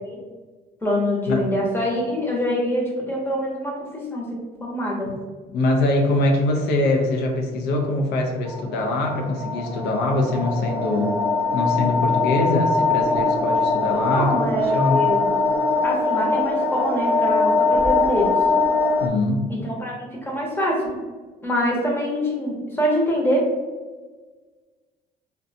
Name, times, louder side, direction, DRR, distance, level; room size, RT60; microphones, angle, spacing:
voice 1, 0.8-5.1 13.9-15.3 15.8-18.3 19.5-21.0 21.4-23.5, equal, 15° left, -2 dB, 0.8 m, -25 dB
voice 2, 5.5-11.2 11.5-15.0 19.0-19.5, left 2 dB, 85° left, 3 dB, 0.5 m, -23 dB
sound 1, 8.5-19.1, left 4 dB, 10° right, 0.3 m, -22 dB
2.5 x 2.2 x 2.7 m, 1.4 s
cardioid pair, 110°, 17 cm